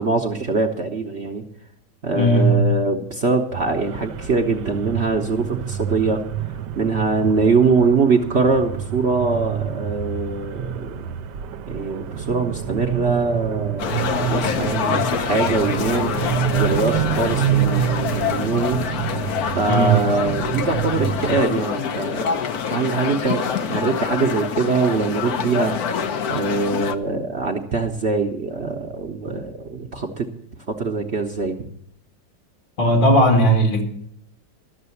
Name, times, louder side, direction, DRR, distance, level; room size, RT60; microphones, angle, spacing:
voice 1, 0.0-1.4 2.0-6.2 6.7-11.1 11.7-16.1 16.5-18.8 19.5-22.4 22.7-25.7 26.3-30.3 30.7-31.6, right 4 dB, 45° right, 0.9 m, -23 dB
voice 2, 2.1-2.6 19.7-20.0 32.8-33.8, right 1 dB, 80° left, 2.8 m, -16 dB
sound 1, 3.5-21.4, right 9 dB, 75° right, 1.2 m, -27 dB
sound 2, 13.8-27.0, left 7 dB, 65° left, 1.1 m, -26 dB
12.5 x 6.8 x 8.3 m
omnidirectional pair, 2.0 m